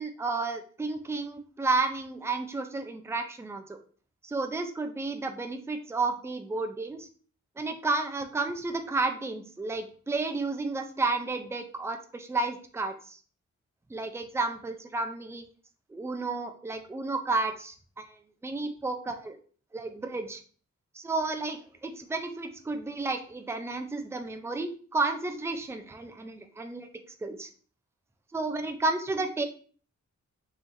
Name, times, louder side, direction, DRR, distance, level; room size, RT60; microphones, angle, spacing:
voice 1, 0.0-3.8 4.2-7.0 7.6-13.2 13.9-15.4 15.9-19.4 19.7-20.4 20.9-26.9 27.2-27.5 28.3-29.4, right 3 dB, 10° right, 6 dB, 0.4 m, -32 dB
5.5 x 3.2 x 2.6 m, 0.43 s
wide cardioid pair, 165°, 29 cm